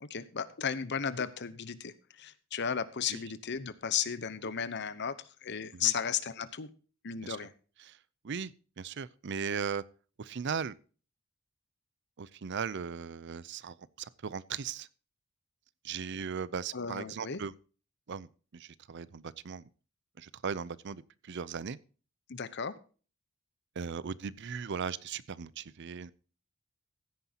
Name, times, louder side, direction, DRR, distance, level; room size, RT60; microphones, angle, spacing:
voice 1, 0.0-6.7 7.0-7.5 16.7-17.4 22.3-22.8, left 7 dB, 55° left, 0.9 m, -35 dB
voice 2, 8.8-9.8 10.2-10.7 12.2-14.9 15.8-17.5 18.1-19.7 20.2-21.8 23.8-26.1, right 6 dB, 55° right, 0.5 m, -38 dB
15.5 x 9.5 x 2.9 m
head